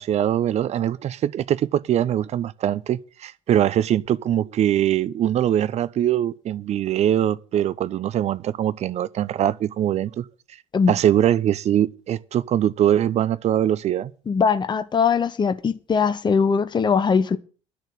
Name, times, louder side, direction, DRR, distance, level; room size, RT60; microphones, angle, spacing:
voice 1, 0.0-10.2 10.9-14.1, right 11 dB, 45° right, 0.7 m, -22 dB
voice 2, 14.3-17.4, left 6 dB, 30° left, 1.0 m, -21 dB
10.5 x 6.5 x 9.0 m
figure-of-eight pair, 60°, 16 cm